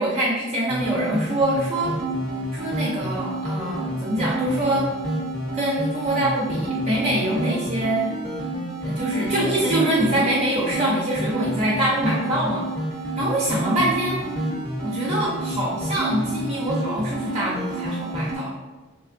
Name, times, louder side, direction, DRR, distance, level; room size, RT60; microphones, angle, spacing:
voice 1, 0.0-1.9 2.5-4.9 5.5-8.1 8.8-12.6 13.2-14.2 14.8-18.5, right 1 dB, 30° right, -5 dB, 0.5 m, -24 dB
sound 1, 0.7-18.3, right 1 dB, ahead, 0.7 m, -29 dB
3.4 x 3.3 x 2.5 m, 1.3 s
head